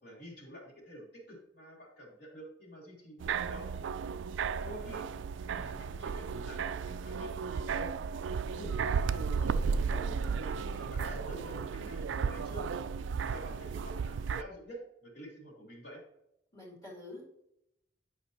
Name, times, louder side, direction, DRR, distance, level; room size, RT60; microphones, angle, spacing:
voice 1, 0.0-3.7 4.5-5.1 5.5-7.9 8.4-9.6 10.4-12.6 13.2-16.0, equal, 60° left, -3 dB, 3.2 m, -48 dB
sound 1, 3.2-14.4, right 6 dB, 70° right, 0.3 m, -34 dB
voice 2, 9.9-10.4 16.5-17.4, left 2 dB, 20° left, -5 dB, 2.2 m, -48 dB
11.0 x 5.3 x 2.8 m, 0.81 s
head